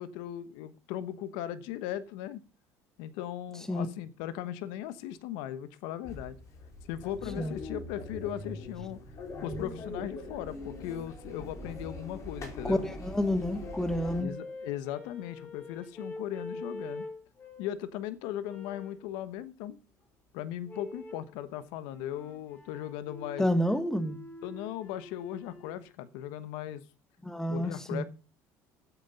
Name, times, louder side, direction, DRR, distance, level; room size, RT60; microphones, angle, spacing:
voice 1, 0.0-2.4 3.0-6.4 6.8-9.0 9.4-12.8 14.2-17.1 17.6-19.8 20.3-23.5 24.4-26.8 27.5-28.0, left 11 dB, 80° left, 1.1 m, -38 dB
sound 1, 6.0-14.2, left 2 dB, 45° left, 4.4 m, -42 dB
voice 2, 12.6-14.3 23.4-24.2 27.2-28.0, left 1 dB, 5° left, 1.7 m, -29 dB
sound 2, 13.6-17.8 18.4-19.0 20.6-21.3 21.9-25.8, left 2 dB, 30° left, 3.7 m, -45 dB
12.5 x 8.3 x 5.3 m
supercardioid pair, 90°, 7 cm